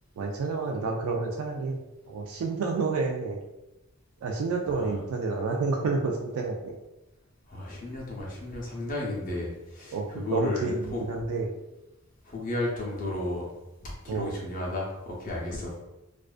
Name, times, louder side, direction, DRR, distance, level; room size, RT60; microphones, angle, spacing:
voice 1, 0.2-3.4 4.2-6.8 9.9-11.5 14.1-14.3, right 4 dB, 80° right, 2 dB, 0.3 m, -29 dB
voice 2, 7.5-11.0 12.3-13.5 13.8-15.7, left 2 dB, 40° left, -3 dB, 0.5 m, -33 dB
2.4 x 2.2 x 2.4 m, 0.97 s
head